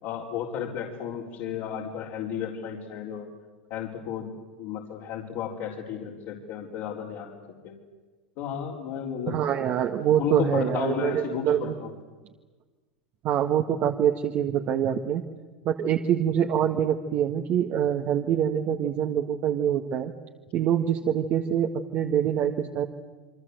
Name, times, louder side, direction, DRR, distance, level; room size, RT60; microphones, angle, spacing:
voice 1, 0.0-3.3 3.7-4.3 4.6-7.4 7.6-7.7 8.4-9.4 10.1-11.9, left 8 dB, 60° left, -3 dB, 4.3 m, -33 dB
voice 2, 9.3-11.7 13.2-15.2 15.7-20.1 20.5-22.9, right 9 dB, 45° right, 3 dB, 1.8 m, -25 dB
28.5 x 23.5 x 8.1 m, 1.3 s
hypercardioid pair, 100°, 4 cm